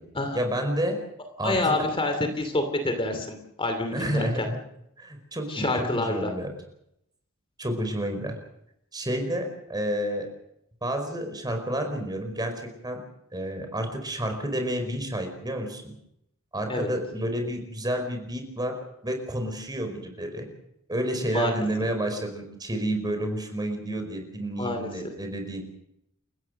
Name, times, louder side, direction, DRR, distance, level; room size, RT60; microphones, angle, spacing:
voice 1, 0.3-1.0 1.4-1.6 3.9-4.6 5.0-6.5 7.6-8.3 8.9-10.3 10.8-13.0 13.3-15.9 16.5-18.7 19.0-20.5 20.9-25.6, right 1 dB, 20° right, 5 dB, 4.9 m, -30 dB
voice 2, 1.4-4.5 5.5-6.3 16.7-16.9 21.3-21.5 24.6-24.9, left 2 dB, 25° left, 6 dB, 2.7 m, -27 dB
30.0 x 15.5 x 6.6 m, 0.80 s
head